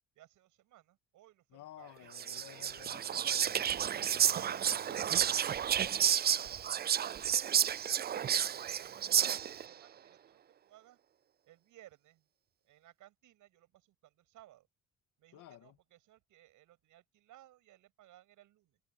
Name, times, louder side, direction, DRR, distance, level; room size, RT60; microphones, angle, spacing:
voice 1, 0.2-2.3 6.2-11.0 11.4-12.3 12.6-14.7 15.2-18.8, right 14 dB, 85° right, 6.8 m, -61 dB
voice 2, 1.5-5.6 15.3-15.8, left 14 dB, 90° left, 2.3 m, -55 dB
Whispering, 2.1-9.7, right 9 dB, 35° right, 0.4 m, -31 dB
cardioid pair, 90°, 30 cm